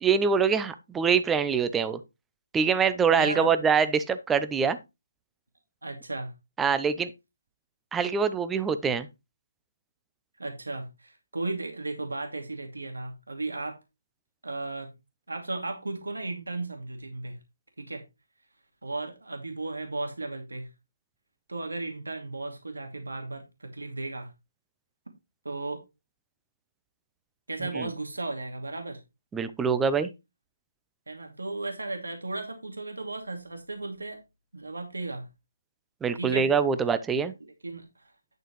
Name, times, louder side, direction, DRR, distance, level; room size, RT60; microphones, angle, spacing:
voice 1, 0.0-2.0 2.5-4.8 6.6-7.1 7.9-9.1 27.8-27.9 29.3-30.1 36.0-37.3, right 6 dB, 10° right, 0.6 m, -24 dB
voice 2, 3.2-3.5 5.8-6.3 10.4-13.8 14.4-14.9 15.3-17.4 17.8-18.0 18.8-20.7 21.5-24.3 25.4-25.8 27.5-29.0 31.1-34.2 34.5-35.3 36.1-36.5 37.4-38.1, right 2 dB, 85° right, 2.6 m, -35 dB
11.0 x 6.5 x 3.1 m
figure-of-eight pair, 155°, 0 cm